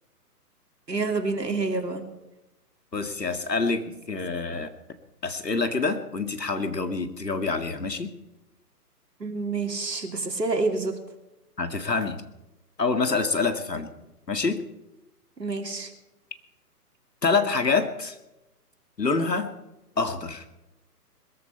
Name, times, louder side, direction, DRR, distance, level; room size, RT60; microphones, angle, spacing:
voice 1, 0.9-2.0 9.2-10.9 15.4-15.9, right 3 dB, 90° right, 4 dB, 3.1 m, -28 dB
voice 2, 2.9-4.7 5.2-8.1 11.6-12.2 12.8-13.9 14.3-14.6 17.2-18.2 19.0-19.5 20.0-20.4, left 4 dB, 90° left, 8 dB, 2.1 m, -26 dB
21.5 x 14.0 x 4.5 m, 0.94 s
figure-of-eight pair, 135°, 48 cm